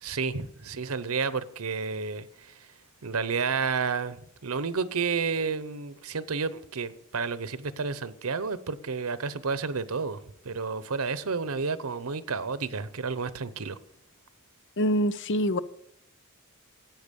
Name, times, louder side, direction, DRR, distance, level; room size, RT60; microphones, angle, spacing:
voice 1, 0.0-2.7 3.0-13.8, right 5 dB, 85° right, 0.8 m, -31 dB
voice 2, 14.8-15.6, equal, 60° left, 0.7 m, -25 dB
14.0 x 9.0 x 5.3 m
head